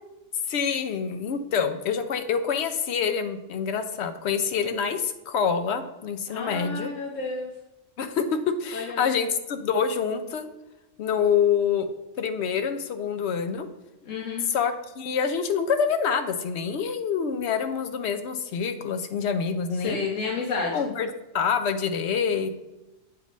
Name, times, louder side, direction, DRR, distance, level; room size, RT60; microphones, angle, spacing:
voice 1, 0.5-6.9 8.0-10.5 11.0-11.9 12.2-13.7 14.5-20.0 20.7-22.5, left 6 dB, 65° left, 8 dB, 0.8 m, -26 dB
voice 2, 6.3-7.5 8.7-9.1 14.0-14.5 19.8-20.9, left 4 dB, 85° left, -2 dB, 1.2 m, -31 dB
7.8 x 3.1 x 5.2 m, 0.98 s
omnidirectional pair, 1.3 m